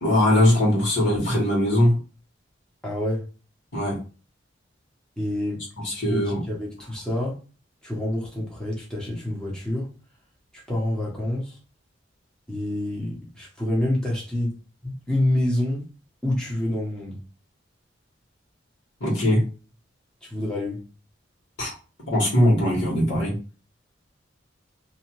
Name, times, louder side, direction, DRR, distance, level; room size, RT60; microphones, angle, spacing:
voice 1, 0.0-1.9 3.7-4.0 5.8-6.4 19.0-19.4 21.6-21.7 22.1-23.3, left 1 dB, 85° left, 1.5 m, -20 dB
voice 2, 2.8-3.3 5.2-7.4 7.8-9.9 10.5-11.6 12.5-14.6 14.8-15.9 16.2-17.2 20.2-20.8, left 1 dB, 5° left, 0.9 m, -27 dB
2.7 x 2.4 x 2.9 m
head